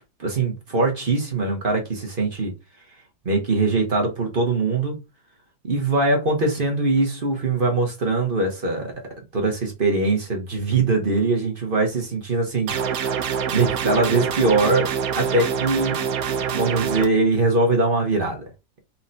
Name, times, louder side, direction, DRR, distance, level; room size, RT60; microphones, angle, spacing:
voice 1, 0.2-2.5 3.2-4.9 5.6-8.9 9.3-16.0 16.5-18.4, right 3 dB, 35° right, 1.0 m, -22 dB
sound 1, 12.7-17.1, right 7 dB, 65° right, 1.0 m, -25 dB
4.3 x 3.8 x 2.7 m
omnidirectional pair, 1.9 m